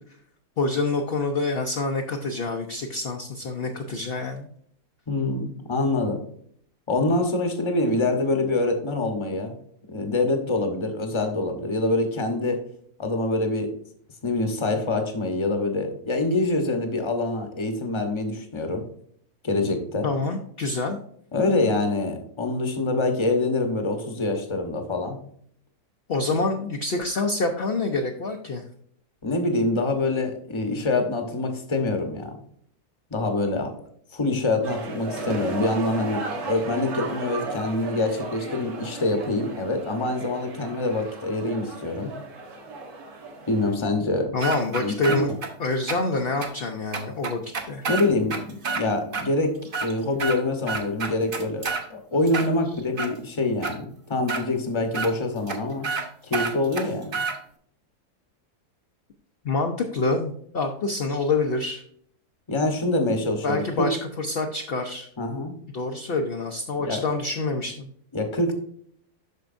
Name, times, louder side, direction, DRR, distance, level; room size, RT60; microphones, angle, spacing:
voice 1, 0.6-4.5 20.0-21.0 26.1-28.6 44.3-45.3 45.6-47.9 59.4-61.8 63.4-65.1 65.7-67.9, left 3 dB, 55° left, 3 dB, 0.7 m, -26 dB
voice 2, 5.1-6.2 6.9-9.5 9.9-12.6 13.0-13.7 14.2-18.8 19.4-20.1 21.3-25.2 29.2-32.4 33.1-33.7 34.1-42.1 43.5-44.3 44.8-45.4 47.9-51.6 51.9-55.9 56.2-57.2 62.5-63.9 65.2-65.5 66.8-67.0 68.1-68.5, left 2 dB, 25° left, 5 dB, 0.8 m, -25 dB
sound 1, 34.6-43.7, right 3 dB, 70° right, 1.7 m, -35 dB
sound 2, 44.4-45.5 45.9-46.0 46.4-46.5 46.9-48.8 49.1-49.3 49.6-50.4 50.7-51.8 52.3-53.1 53.6-53.7 54.3-54.4 54.9-55.1 55.5-55.6 55.8-56.0 56.3-57.4, right 4 dB, 40° right, 1.0 m, -29 dB
12.0 x 4.6 x 2.5 m, 0.64 s
omnidirectional pair, 1.6 m